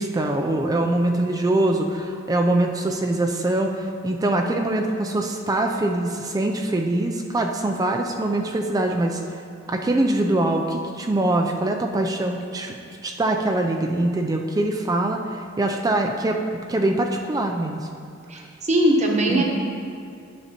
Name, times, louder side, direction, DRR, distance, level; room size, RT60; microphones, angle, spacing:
voice 1, 0.0-9.4 9.7-12.8 13.0-17.9 18.3-18.4 19.3-19.4, right 1 dB, 20° right, 3 dB, 0.3 m, -23 dB
voice 2, 18.3-19.4, right 1 dB, 35° right, 0 dB, 0.9 m, -20 dB
9.7 x 6.5 x 2.9 m, 2.4 s
head